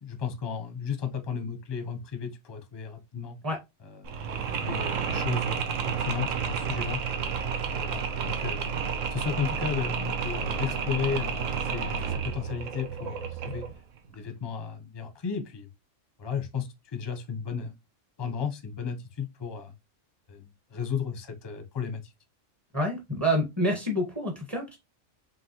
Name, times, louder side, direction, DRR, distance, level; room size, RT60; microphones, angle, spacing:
voice 1, 0.0-3.4 3.9-4.2 4.6-7.0 7.6-8.7 9.1-13.7 14.1-15.7 16.2-17.8 18.2-19.7 20.3-22.1, left 6 dB, 25° left, 0.6 m, -34 dB
Mechanisms, 4.0-13.8, right 6 dB, 85° right, 1.1 m, -31 dB
voice 2, 22.7-24.8, equal, 20° right, 0.9 m, -27 dB
5.2 x 2.8 x 2.9 m
omnidirectional pair, 1.3 m